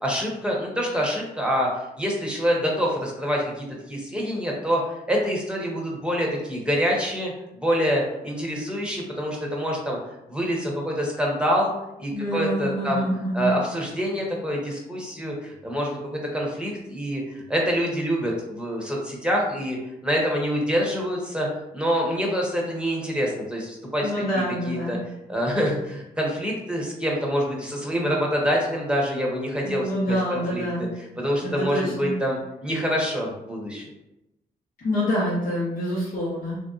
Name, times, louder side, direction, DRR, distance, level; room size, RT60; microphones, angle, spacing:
voice 1, 0.0-1.7 2.0-10.0 10.3-11.7 12.0-13.0 13.3-19.8 20.0-21.5 21.7-24.1 24.7-25.0 25.3-30.6 31.2-33.8, equal, 5° right, -2 dB, 0.9 m, -26 dB
voice 2, 12.1-13.6 24.0-25.1 29.6-30.9 31.4-32.2 34.8-36.6, equal, 55° left, -7 dB, 0.9 m, -26 dB
3.3 x 2.6 x 2.4 m, 0.90 s
cardioid pair, 70°, 17 cm